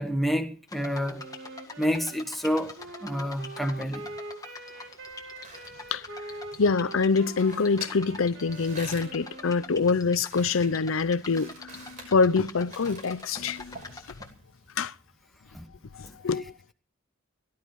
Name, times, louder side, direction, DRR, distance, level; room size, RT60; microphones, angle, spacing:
voice 1, 0.0-1.3 1.8-2.7 3.0-4.1 15.5-15.7, equal, ahead, 1.3 m, -28 dB
sound 1, 0.7-14.3, left 3 dB, 15° left, 1.7 m, -45 dB
Wind instrument woodwind instrument, 1.1-10.0, right 2 dB, 55° right, 2.2 m, -44 dB
sound 2, 5.0-14.7, right 2 dB, 40° right, 5.8 m, -49 dB
voice 2, 6.6-13.8 14.8-14.9 15.9-16.5, left 4 dB, 70° left, 0.6 m, -25 dB
18.0 x 12.0 x 4.7 m
head